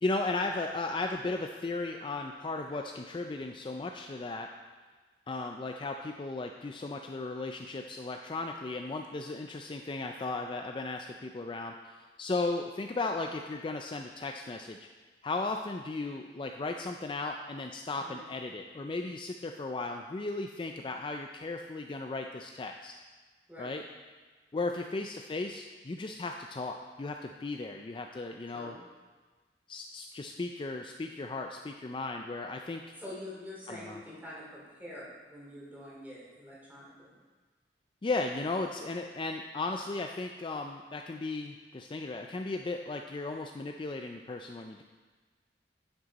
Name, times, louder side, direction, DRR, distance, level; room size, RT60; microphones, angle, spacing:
voice 1, 0.0-4.5 5.3-14.8 15.2-22.9 23.6-23.8 24.5-28.7 29.7-32.8 33.7-34.0 38.0-44.8, left 3 dB, 30° left, 4 dB, 0.4 m, -36 dB
voice 2, 33.0-37.1, left 1 dB, 10° right, -6 dB, 2.6 m, -46 dB
9.7 x 7.9 x 4.1 m, 1.4 s
head